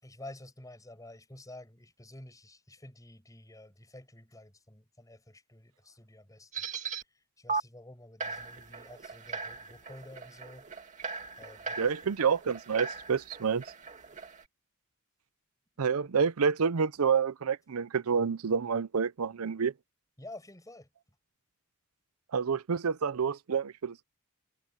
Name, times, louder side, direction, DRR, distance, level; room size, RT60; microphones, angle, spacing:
voice 1, 0.0-6.7 7.1-10.7 11.4-11.9 20.2-20.9, left 1 dB, 15° left, 6.5 m, -50 dB
sound 1, 6.5-7.0 7.5-7.6 8.2-14.4, right 4 dB, 35° right, 2.4 m, -39 dB
voice 2, 11.8-13.6 15.8-19.7 22.3-24.0, right 6 dB, 85° right, 0.6 m, -28 dB
head